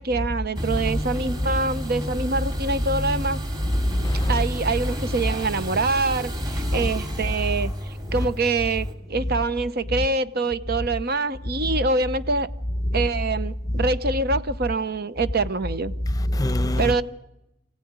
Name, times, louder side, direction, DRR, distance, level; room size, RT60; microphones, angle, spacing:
voice 1, 0.0-3.4 4.3-12.5 12.9-15.9 16.8-17.0, right 3 dB, 50° right, 0.8 m, -25 dB
sound 1, 0.5-8.9, equal, 20° right, 2.7 m, -30 dB
voice 2, 3.7-4.4 6.7-6.9 12.9-13.0 16.1-16.9, left 1 dB, 15° left, 0.8 m, -23 dB
28.0 x 16.5 x 9.5 m
head